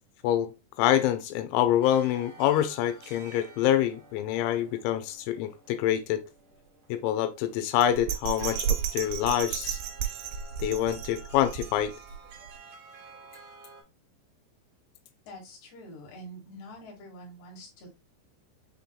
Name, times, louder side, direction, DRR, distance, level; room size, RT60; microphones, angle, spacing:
voice 1, 0.8-6.2 6.9-9.8 10.6-11.9, left 11 dB, 85° left, 2.9 m, -26 dB
sound 1, 1.8-13.8, right 3 dB, 70° right, 1.5 m, -51 dB
Bell, 7.8-12.2 12.6-12.7, right 8 dB, 85° right, 2.9 m, -33 dB
voice 2, 15.3-17.9, equal, 50° left, 2.1 m, -46 dB
7.0 x 3.2 x 2.2 m
omnidirectional pair, 5.2 m